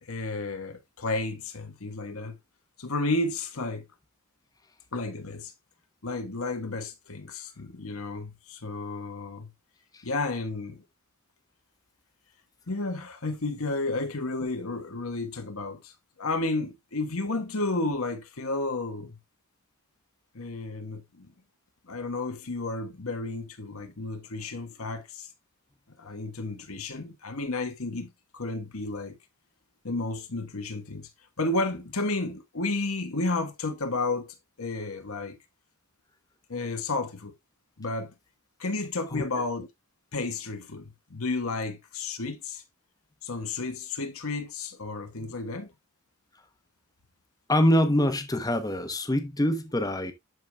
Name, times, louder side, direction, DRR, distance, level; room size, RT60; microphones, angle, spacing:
voice 1, 0.0-2.4 2.8-3.9 4.9-5.5 6.0-9.5 10.0-10.8 12.7-15.9 16.2-19.2 20.3-21.3 21.9-25.3 26.0-29.2 29.8-31.1 31.4-35.4 36.5-37.3 37.8-38.1 38.6-39.7 40.1-42.6 43.2-45.7, left 2 dB, 85° left, 1.4 m, -32 dB
voice 2, 47.5-50.1, left 1 dB, 15° left, 0.9 m, -25 dB
12.5 x 4.8 x 2.3 m
head